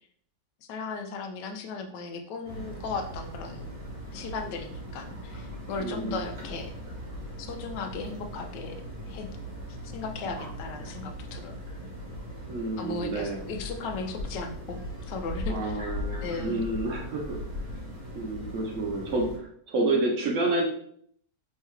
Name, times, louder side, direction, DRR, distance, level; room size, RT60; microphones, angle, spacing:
voice 1, 0.7-3.7 4.1-6.7 7.4-8.8 9.1-9.3 9.9-11.6 12.8-14.8 15.1-15.8 16.2-16.6, left 4 dB, 80° left, 6 dB, 1.2 m, -36 dB
sound 1, 2.4-19.4, equal, 40° right, 1.5 m, -39 dB
voice 2, 5.8-6.2 12.5-13.4 15.5-17.6 18.1-20.6, right 2 dB, 60° right, 0 dB, 0.8 m, -29 dB
3.5 x 3.3 x 3.2 m, 0.65 s
omnidirectional pair, 1.9 m